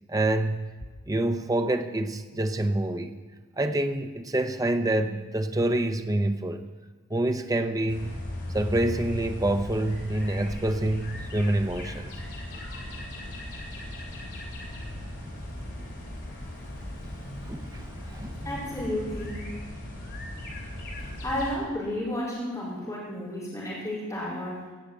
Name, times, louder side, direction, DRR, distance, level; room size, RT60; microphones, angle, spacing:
voice 1, 0.1-0.7 1.1-3.1 3.6-6.6 7.1-8.1 8.5-12.1 17.2-18.5, right 1 dB, 15° right, 8 dB, 0.6 m, -27 dB
sound 1, 7.9-21.6, left 1 dB, 50° left, 3.4 m, -38 dB
voice 2, 18.4-19.5 21.2-24.6, left 1 dB, 15° left, -9 dB, 4.4 m, -32 dB
17.0 x 6.3 x 8.2 m, 1.4 s
head